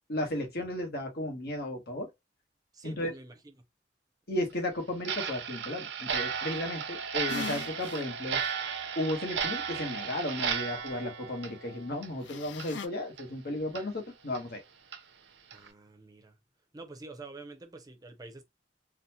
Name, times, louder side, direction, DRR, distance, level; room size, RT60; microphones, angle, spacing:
voice 1, 0.1-2.1 2.8-3.1 4.3-8.4 9.0-14.6, left 1 dB, 60° left, 1.1 m, -34 dB
voice 2, 2.7-3.5 15.5-16.4 16.7-18.4, right 3 dB, 20° right, 0.6 m, -47 dB
Clock, 5.0-12.2 12.5-12.7 13.2-13.3 13.8-13.9 14.3-14.4 14.9-15.0 15.5-15.7, right 7 dB, 80° right, 0.6 m, -35 dB
sound 1, 7.3-8.0 8.4-8.5 12.2-12.9, left 5 dB, 85° left, 0.4 m, -39 dB
4.0 x 2.1 x 2.7 m
head